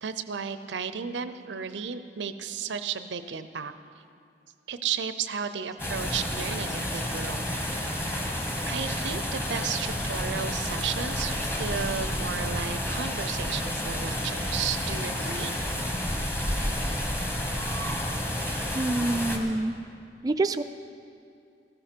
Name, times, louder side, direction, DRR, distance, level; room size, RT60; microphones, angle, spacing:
voice 1, 0.0-3.7 4.7-7.8 8.7-15.5, right 7 dB, 85° right, 11 dB, 0.6 m, -33 dB
sound 1, 5.8-19.4, left 1 dB, 15° left, 1.2 m, -30 dB
voice 2, 18.7-19.8 20.2-20.6, right 2 dB, 20° right, 8 dB, 0.3 m, -26 dB
15.0 x 13.0 x 4.5 m, 2.4 s
head